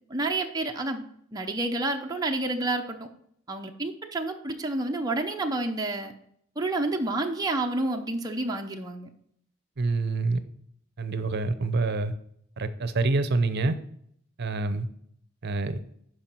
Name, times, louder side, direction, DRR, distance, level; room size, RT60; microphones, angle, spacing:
voice 1, 0.1-1.0 1.3-3.1 3.5-6.1 6.6-9.1, right 2 dB, 20° right, 2 dB, 0.7 m, -29 dB
voice 2, 9.8-10.4 11.0-12.1 12.6-13.8 14.4-14.9 15.4-15.8, right 3 dB, 55° right, 12 dB, 0.7 m, -26 dB
11.5 x 4.9 x 4.5 m, 0.69 s
head